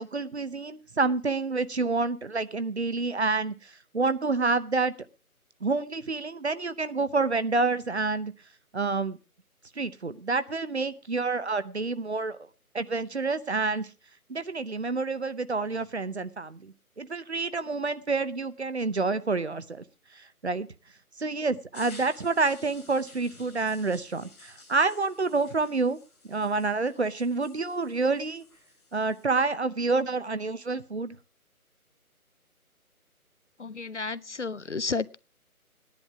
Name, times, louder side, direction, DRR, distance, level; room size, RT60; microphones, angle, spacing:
voice 1, 0.0-4.9 5.6-8.3 8.7-9.2 9.8-12.4 12.7-13.9 14.3-19.8 20.1-20.7 21.2-26.0 26.3-28.4 28.9-31.2, right 3 dB, 45° right, 0.8 m, -28 dB
sound 1, 21.7-29.2, left 3 dB, 5° left, 1.6 m, -53 dB
voice 2, 33.6-35.2, left 4 dB, 50° left, 0.6 m, -32 dB
16.5 x 10.5 x 4.7 m
figure-of-eight pair, 155°, 44 cm